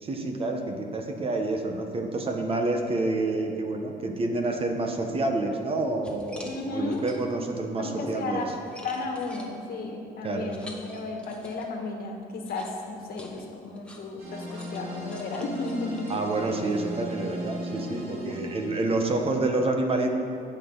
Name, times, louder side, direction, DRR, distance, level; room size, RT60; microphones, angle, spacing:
voice 1, 0.0-8.4 10.2-10.5 16.1-20.1, right 2 dB, 35° right, 3 dB, 1.2 m, -28 dB
sound 1, 5.5-5.6 6.0-7.5 8.0-11.9 12.4-16.9, left 1 dB, 5° left, 1.5 m, -48 dB
voice 2, 6.4-7.0 7.8-8.5 8.8-16.1 17.8-18.5 18.9-19.0, left 3 dB, 65° left, 2 dB, 1.6 m, -34 dB
sound 2, 14.2-19.4, equal, 65° right, 2.7 m, -38 dB
17.0 x 6.3 x 4.0 m, 2.4 s
cardioid pair, 110°, 17 cm